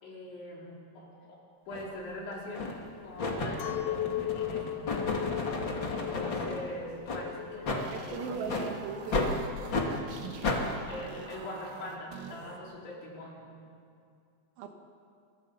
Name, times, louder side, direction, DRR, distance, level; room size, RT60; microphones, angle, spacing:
voice 1, 0.0-1.4 1.7-5.3 5.9-8.4 10.6-13.5, left 1 dB, 65° left, -4 dB, 6.9 m, -43 dB
sound 1, 1.7-1.9 2.5-2.8 3.2-6.6 7.0-7.2 7.6-7.8 8.5-8.7 9.1-9.3 9.7-9.9 10.4-10.6, left 3 dB, 40° left, 1.8 m, -32 dB
Chink clink, 3.6-9.1, left 12 dB, 85° left, 3.7 m, -37 dB
sound 2, 7.4-12.6, right 5 dB, 65° right, 4.0 m, -46 dB
voice 2, 7.9-9.2 14.6-14.7, right 5 dB, 85° right, 3 dB, 4.6 m, -37 dB
28.5 x 23.0 x 5.7 m, 2.4 s
omnidirectional pair, 5.8 m